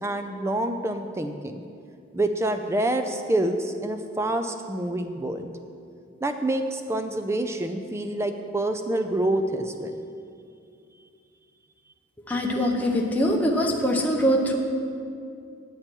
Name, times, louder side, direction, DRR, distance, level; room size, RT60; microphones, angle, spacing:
voice 1, 0.0-1.6 2.1-5.5 6.2-10.0, right 1 dB, 15° right, 6 dB, 0.4 m, -27 dB
voice 2, 12.3-14.6, equal, 5° left, -1 dB, 0.7 m, -23 dB
9.1 x 8.9 x 4.5 m, 2.5 s
head